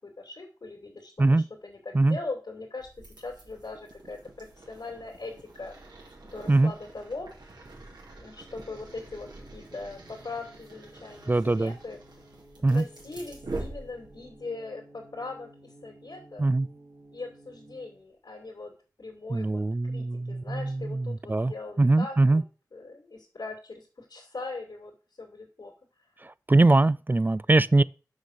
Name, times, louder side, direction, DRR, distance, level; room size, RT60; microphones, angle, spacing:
voice 1, 0.0-5.7 6.2-7.3 8.2-12.0 12.6-16.4 17.1-22.4 22.7-25.7, left 3 dB, 70° left, 2.4 m, -40 dB
sound 1, 2.8-14.4, right 2 dB, 85° right, 2.9 m, -45 dB
sound 2, 8.7-18.0, right 1 dB, 60° right, 2.5 m, -55 dB
voice 2, 11.3-11.8 12.6-12.9 16.4-16.7 19.3-22.4 26.2-27.8, right 2 dB, 25° right, 0.3 m, -22 dB
6.4 x 5.5 x 6.4 m
wide cardioid pair, 75°, 7 cm